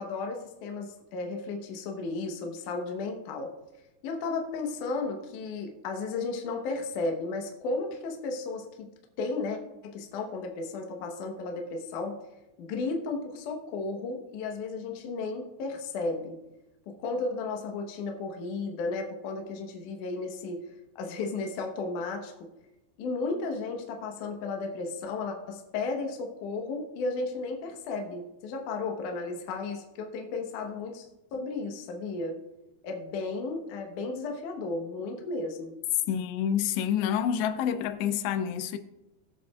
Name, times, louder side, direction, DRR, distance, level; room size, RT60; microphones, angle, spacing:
voice 1, 0.0-3.5 4.0-8.9 9.2-12.2 12.6-16.4 16.9-20.7 21.0-22.5 23.0-31.1 31.3-32.4 32.8-35.7, left 3 dB, 70° left, 2.0 m, -34 dB
voice 2, 36.1-38.8, left 9 dB, 85° left, 2.8 m, -28 dB
20.0 x 7.0 x 2.4 m
omnidirectional pair, 4.9 m